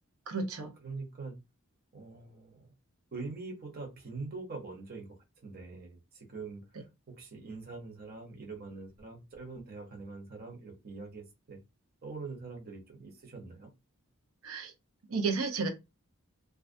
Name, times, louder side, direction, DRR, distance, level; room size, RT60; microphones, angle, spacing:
voice 1, 0.3-0.7 14.4-14.7 15.1-15.7, right 4 dB, 85° right, 0.6 m, -32 dB
voice 2, 0.8-1.4 1.9-2.7 3.1-5.2 5.4-11.6 12.0-13.7, right 3 dB, 45° right, 0.8 m, -44 dB
2.3 x 2.1 x 2.5 m
head